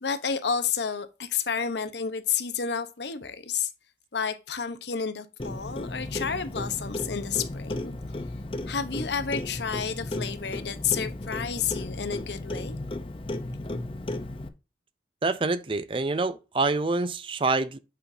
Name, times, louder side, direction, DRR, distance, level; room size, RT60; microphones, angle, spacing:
voice 1, 0.0-3.7 4.1-7.9 8.7-12.8, left 6 dB, 80° left, 0.9 m, -30 dB
Clock, 5.4-14.5, left 1 dB, 30° left, 0.6 m, -34 dB
voice 2, 15.2-17.8, right 3 dB, 30° right, 0.4 m, -26 dB
8.4 x 5.8 x 2.7 m
head